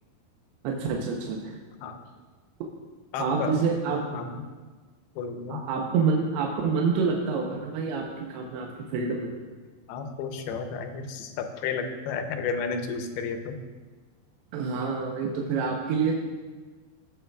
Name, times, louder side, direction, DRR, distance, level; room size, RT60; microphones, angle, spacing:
voice 1, 0.6-1.5 3.2-4.0 5.5-9.3 14.5-16.1, right 5 dB, 85° right, -1 dB, 2.8 m, -27 dB
voice 2, 3.1-3.5 4.1-4.4 5.2-5.6 9.9-13.6, left 5 dB, 80° left, 5 dB, 2.7 m, -32 dB
16.5 x 7.8 x 2.3 m, 1.4 s
omnidirectional pair, 4.5 m